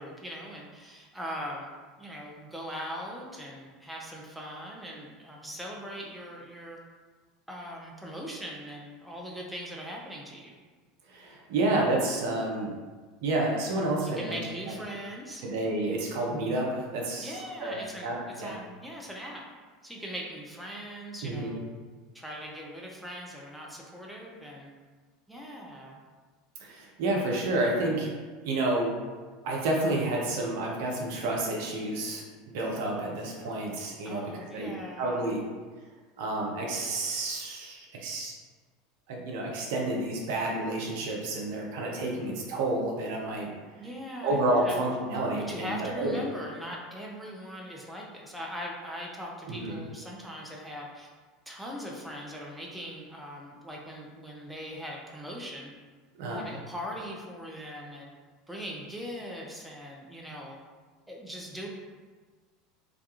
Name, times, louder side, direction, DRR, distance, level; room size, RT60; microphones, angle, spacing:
voice 1, 0.0-6.8 7.5-10.6 14.2-15.4 17.2-19.4 19.8-21.6 22.1-24.7 25.3-26.0 34.0-35.4 43.8-44.8 45.5-51.1 51.5-55.7 56.3-58.1 58.5-60.6 61.1-61.7, equal, 5° right, -2 dB, 0.4 m, -40 dB
voice 2, 11.1-12.7 13.2-14.4 15.4-18.5 21.2-21.5 26.6-28.1 28.4-29.0 29.4-35.4 36.2-38.3 39.1-43.5 44.2-46.2 49.5-49.8 56.2-56.4, right 2 dB, 60° right, -2 dB, 0.5 m, -30 dB
2.3 x 2.2 x 2.8 m, 1.4 s
figure-of-eight pair, 75°, 0 cm